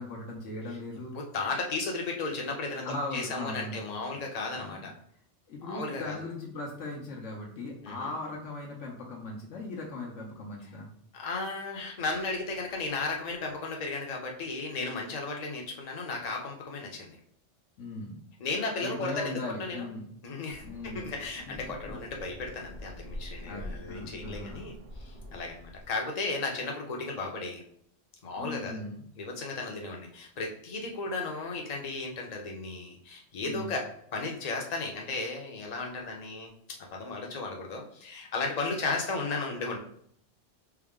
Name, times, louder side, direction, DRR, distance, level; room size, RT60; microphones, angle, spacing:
voice 1, 0.0-1.2 2.8-3.8 4.1-4.2 4.5-4.9 5.5-10.9 17.8-18.2 18.8-20.1 20.6-21.1 21.5-22.0 23.4-24.7 28.4-29.0 33.4-33.7, left 2 dB, 75° left, -2 dB, 1.1 m, -39 dB
voice 2, 1.1-2.9 3.1-4.9 5.6-6.2 7.8-8.1 11.1-17.2 18.4-19.9 20.2-27.6 28.2-28.8 29.2-33.9 34.1-36.5 36.9-39.8, left 3 dB, 40° left, 1 dB, 0.7 m, -35 dB
sound 1, 20.5-26.0, left 1 dB, 65° right, 1.0 m, -45 dB
4.6 x 2.0 x 3.6 m, 0.66 s
omnidirectional pair, 1.3 m